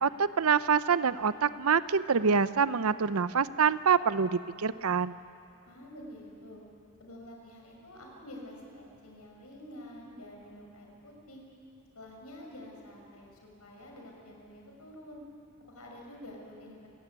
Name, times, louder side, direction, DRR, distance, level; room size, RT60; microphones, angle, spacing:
voice 1, 0.0-5.2, right 6 dB, 80° right, 15 dB, 0.6 m, -26 dB
voice 2, 5.7-6.6 7.0-11.4 11.9-15.2 15.7-16.9, left 1 dB, 90° left, 0 dB, 6.2 m, -48 dB
28.0 x 17.0 x 9.5 m, 2.6 s
head